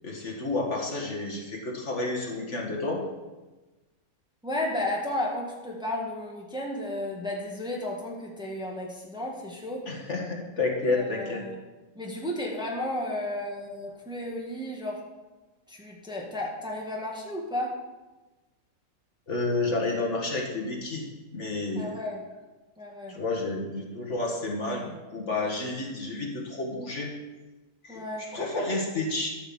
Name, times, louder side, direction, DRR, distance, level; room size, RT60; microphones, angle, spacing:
voice 1, 0.0-3.0 9.9-11.4 19.3-21.1 21.3-22.0 23.1-27.1 27.8-29.3, left 2 dB, 50° left, -1 dB, 1.9 m, -30 dB
voice 2, 4.4-9.8 10.8-11.6 11.9-15.0 15.7-17.8 21.7-22.2 22.8-23.2 27.9-28.3, left 1 dB, 5° right, -2 dB, 1.7 m, -33 dB
12.5 x 5.7 x 7.4 m, 1.2 s
omnidirectional pair, 1.6 m